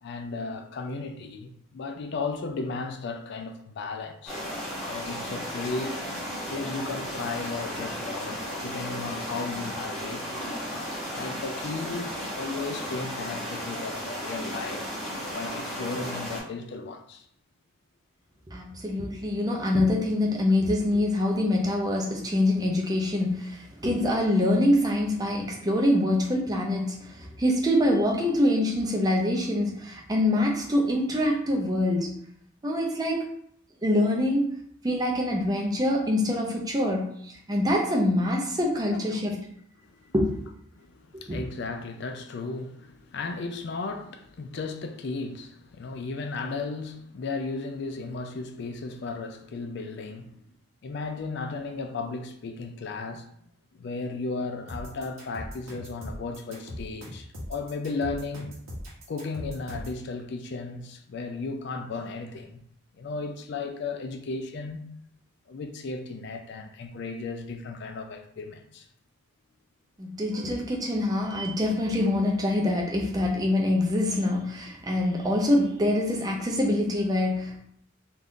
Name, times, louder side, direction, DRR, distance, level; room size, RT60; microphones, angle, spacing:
voice 1, 0.0-4.4 4.8-6.0 6.5-10.4 11.1-14.9 15.3-17.2 23.8-24.2 38.9-39.2 39.8-40.0 40.8-50.3 50.8-53.3 53.7-58.5 59.1-62.6 63.0-64.9 65.5-68.9, left 3 dB, 55° left, 0.3 m, -35 dB
sound 1, 4.3-16.4, equal, 5° left, 0.8 m, -34 dB
voice 2, 18.5-32.1 32.6-33.2 33.8-34.5 34.8-39.4 40.1-40.4 41.1-41.4 70.0-77.6, left 1 dB, 20° right, 0.5 m, -25 dB
sound 2, 54.7-60.0, equal, 85° right, 1.0 m, -39 dB
2.6 x 2.4 x 3.5 m
head